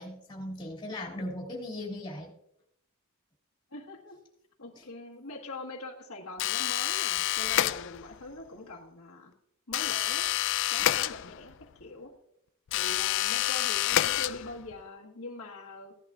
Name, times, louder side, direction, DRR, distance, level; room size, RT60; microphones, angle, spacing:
voice 1, 0.0-2.3 4.7-4.8, left 1 dB, 20° left, -2 dB, 2.6 m, -38 dB
voice 2, 3.7-4.2 4.6-9.3 9.7-10.2 10.7-12.1 12.7-16.0, left 2 dB, 75° left, -2 dB, 1.6 m, -43 dB
sound 1, 6.4-8.2 9.7-11.6 12.7-14.7, left 13 dB, 60° left, 0.3 m, -28 dB
17.0 x 11.0 x 2.5 m, 0.77 s
head